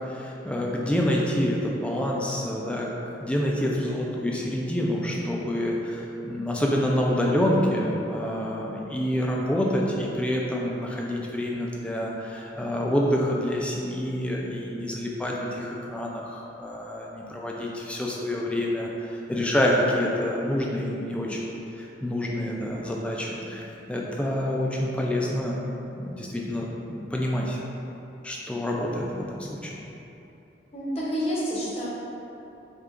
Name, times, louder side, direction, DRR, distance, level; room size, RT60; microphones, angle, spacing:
voice 1, 0.0-2.9 3.2-25.6 26.0-27.6 28.2-29.8, left 1 dB, 5° left, -3 dB, 0.3 m, -27 dB
voice 2, 30.7-31.9, equal, 30° left, -7 dB, 0.7 m, -28 dB
6.4 x 2.4 x 2.4 m, 3.0 s
head